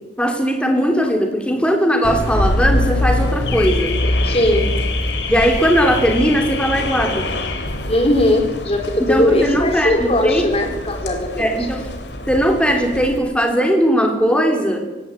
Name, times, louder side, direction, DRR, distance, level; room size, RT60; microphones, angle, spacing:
voice 1, 0.2-3.9 5.3-7.3 9.0-10.4 11.4-11.8 12.2-14.8, equal, 5° left, 3 dB, 3.3 m, -18 dB
Car / Alarm, 2.0-13.2, left 2 dB, 65° left, 2.8 m, -23 dB
voice 2, 4.2-4.8 7.9-11.5, left 1 dB, 30° left, 4 dB, 3.9 m, -19 dB
19.0 x 17.0 x 8.7 m, 1.1 s
head